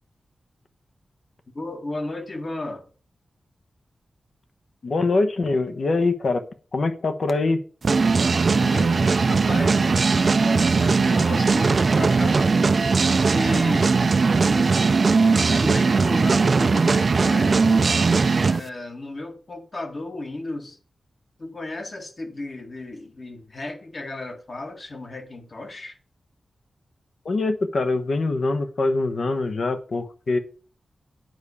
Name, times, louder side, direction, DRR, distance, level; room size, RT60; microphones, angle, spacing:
voice 1, 1.5-2.8 8.5-12.5 13.3-14.0 14.5-14.8 15.3-18.0 18.5-20.8 21.4-26.0, left 2 dB, 40° left, 1.7 m, -34 dB
voice 2, 4.8-6.4 6.7-7.6 27.2-30.4, left 3 dB, 55° left, 1.1 m, -23 dB
sound 1, 7.8-18.6, right 4 dB, 45° right, 0.5 m, -19 dB
9.4 x 4.9 x 7.0 m
wide cardioid pair, 130°, 0 cm